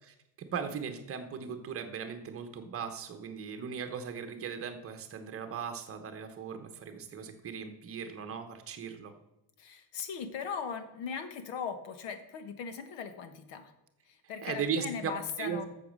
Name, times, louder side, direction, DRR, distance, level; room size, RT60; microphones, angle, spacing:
voice 1, 0.0-9.1 14.4-15.1 15.4-15.6, right 7 dB, 30° right, 7 dB, 1.1 m, -38 dB
voice 2, 9.6-13.7 14.0-15.7, left 6 dB, 65° left, 10 dB, 1.3 m, -39 dB
8.4 x 7.2 x 6.6 m, 0.91 s
cardioid pair, 170°, 47 cm